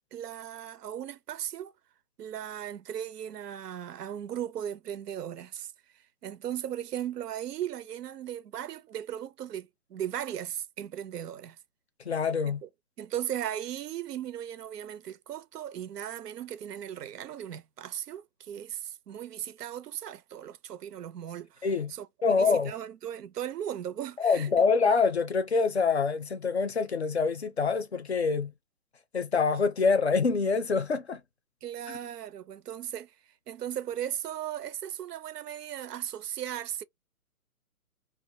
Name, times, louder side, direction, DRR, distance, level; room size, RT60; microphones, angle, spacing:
voice 1, 0.1-1.7 2.2-5.7 6.2-11.6 12.4-12.7 13.0-24.5 31.6-33.1 33.5-36.8, right 10 dB, 90° right, 0.6 m, -37 dB
voice 2, 12.0-12.6 21.6-21.9 22.2-22.7 24.2-28.5 29.1-31.2, left 5 dB, 45° left, 0.5 m, -25 dB
2.3 x 2.1 x 2.6 m
hypercardioid pair, 170°, 46 cm